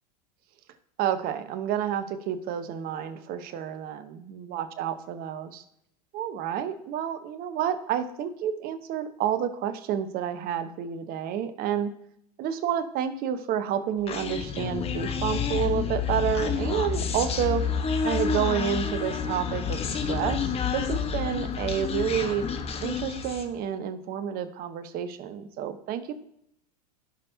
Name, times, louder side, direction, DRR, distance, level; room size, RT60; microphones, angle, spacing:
voice 1, 1.0-5.6 6.1-11.9 12.4-17.7 18.0-22.5 22.8-26.1, right 9 dB, 50° right, 11 dB, 1.1 m, -29 dB
Human voice, 14.1-23.5, left 6 dB, 30° left, 1.2 m, -29 dB
16.5 x 5.5 x 2.8 m, 0.75 s
hypercardioid pair, 100°, 20 cm